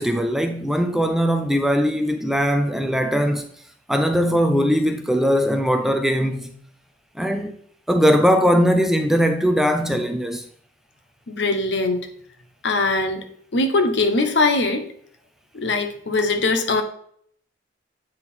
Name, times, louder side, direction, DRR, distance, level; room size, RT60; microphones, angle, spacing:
voice 1, 0.0-3.4 3.9-6.5 7.2-7.5 7.9-10.4, equal, ahead, 0.3 m, -20 dB
voice 2, 11.3-12.0 12.6-13.2 13.5-14.9 15.5-16.8, left 3 dB, 65° left, 0.9 m, -21 dB
7.9 x 3.6 x 4.3 m
head